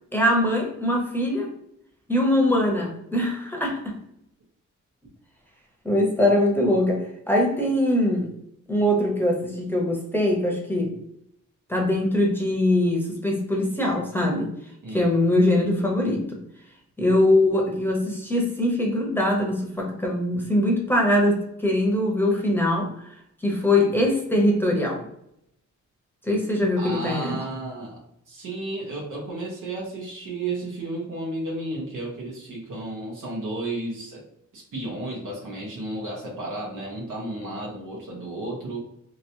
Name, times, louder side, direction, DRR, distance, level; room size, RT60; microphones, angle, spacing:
voice 1, 0.1-1.5 2.1-4.0 5.8-8.3 8.7-11.0 11.7-14.5 14.9-16.3 17.0-22.9 23.4-25.1 26.3-27.3, left 1 dB, 5° left, -1 dB, 0.8 m, -22 dB
voice 2, 26.8-34.2 34.5-38.8, right 2 dB, 85° right, -3 dB, 1.1 m, -33 dB
3.0 x 2.8 x 2.7 m, 0.76 s
wide cardioid pair, 105°, 31 cm